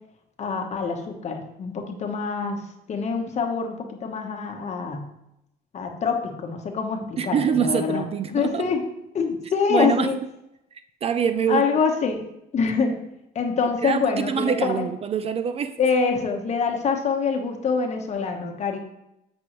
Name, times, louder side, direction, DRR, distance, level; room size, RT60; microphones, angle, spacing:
voice 1, 0.4-2.6 2.9-5.1 5.7-8.0 8.3-8.8 9.1-10.2 11.5-12.2 12.5-13.0 13.3-14.8 15.8-18.8, left 5 dB, 40° left, 3 dB, 1.0 m, -25 dB
voice 2, 7.2-8.7 9.7-10.1 11.0-11.7 13.8-15.8, right 7 dB, 35° right, 10 dB, 0.3 m, -24 dB
7.8 x 5.3 x 3.0 m, 0.85 s
cardioid pair, 110°, 17 cm